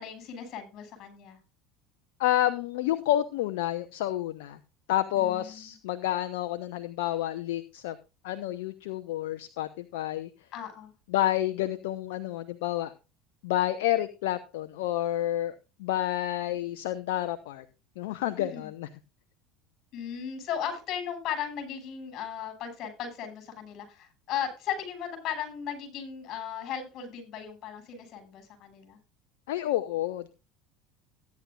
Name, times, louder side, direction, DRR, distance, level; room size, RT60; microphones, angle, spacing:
voice 1, 0.0-1.4 5.1-5.7 10.5-10.9 18.4-18.7 19.9-29.0, left 8 dB, 50° left, 7 dB, 6.8 m, -36 dB
voice 2, 2.2-4.6 4.9-8.0 8.2-10.3 11.1-12.9 13.4-15.5 15.8-17.7 18.0-18.9 29.5-30.3, left 13 dB, 70° left, 12 dB, 0.9 m, -29 dB
16.0 x 10.5 x 2.5 m, 0.30 s
hypercardioid pair, 75°, 0 cm